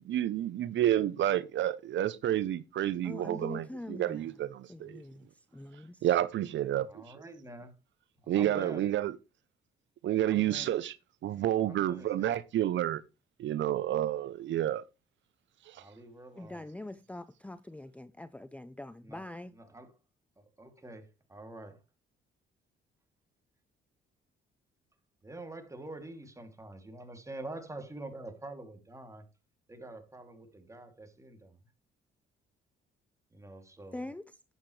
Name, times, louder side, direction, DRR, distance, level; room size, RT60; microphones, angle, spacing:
voice 1, 0.0-5.0 6.0-7.0 8.3-9.1 10.0-10.9 11.2-13.0 13.4-14.8 15.7-15.8, right 12 dB, 70° right, 0.7 m, -30 dB
voice 2, 3.0-4.4 4.7-5.3 5.5-6.0 16.4-19.5 33.9-34.3, left 1 dB, 5° left, 0.6 m, -43 dB
voice 3, 6.8-7.8 8.2-8.8 10.2-10.7 11.6-12.4 15.8-16.6 19.0-20.0 20.4-21.8 25.2-29.3 29.7-31.7 33.3-34.1, right 2 dB, 15° right, 2.7 m, -46 dB
11.5 x 9.1 x 3.2 m
cardioid pair, 90°, 20 cm